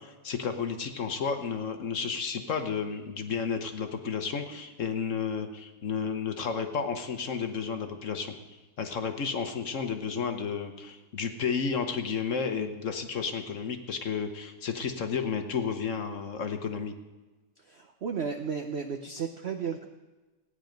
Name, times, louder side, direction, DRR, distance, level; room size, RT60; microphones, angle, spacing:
voice 1, 0.0-8.3 8.8-16.9, left 6 dB, 50° left, 6 dB, 1.1 m, -32 dB
voice 2, 17.6-19.9, right 6 dB, 60° right, 5 dB, 0.7 m, -34 dB
16.5 x 9.8 x 5.2 m, 1.2 s
omnidirectional pair, 2.0 m